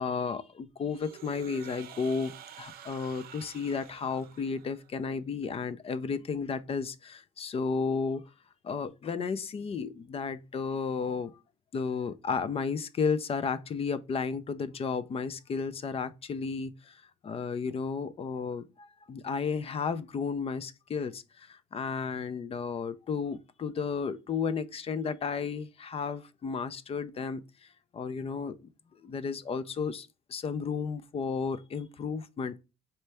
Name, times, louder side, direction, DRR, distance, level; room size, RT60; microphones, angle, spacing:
voice 1, 0.0-8.2 8.6-11.3 11.7-27.4 27.9-28.6 29.0-32.6, left 5 dB, 35° left, 0.5 m, -33 dB
sound 1, 0.9-5.0, right 10 dB, 60° right, 0.6 m, -49 dB
4.4 x 3.2 x 3.3 m
cardioid pair, 110°, 17 cm